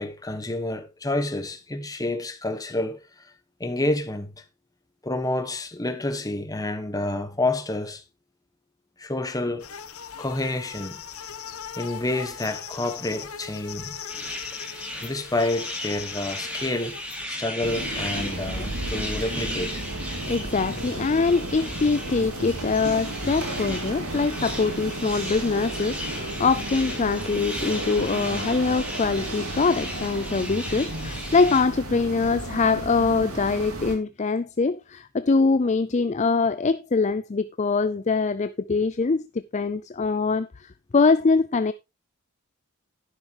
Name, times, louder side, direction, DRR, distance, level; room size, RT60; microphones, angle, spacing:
voice 1, 0.0-3.3 3.6-4.3 5.0-8.0 9.0-9.7 10.2-11.0 11.8-14.0 15.0-17.0 17.3-19.8, left 2 dB, 15° left, 1.3 m, -29 dB
sound 1, 9.6-17.3, left 8 dB, 70° left, 1.2 m, -39 dB
sound 2, 14.1-31.6, equal, 5° right, 2.8 m, -36 dB
sound 3, 17.6-33.9, right 1 dB, 75° right, 2.7 m, -33 dB
voice 2, 20.2-41.7, left 4 dB, 30° left, 0.4 m, -23 dB
11.0 x 9.9 x 3.0 m
head